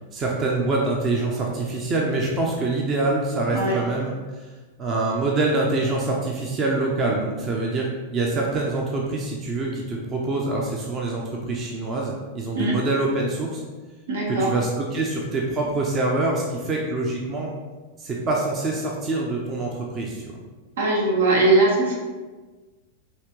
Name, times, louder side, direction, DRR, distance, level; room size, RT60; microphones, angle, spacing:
voice 1, 0.1-4.1 4.8-13.6 14.3-17.5 18.0-20.2, right 2 dB, 30° right, -1 dB, 0.7 m, -25 dB
voice 2, 14.1-14.6 20.8-22.0, right 2 dB, 70° right, -2 dB, 1.1 m, -20 dB
5.7 x 2.9 x 3.1 m, 1.3 s
figure-of-eight pair, 95°, 0 cm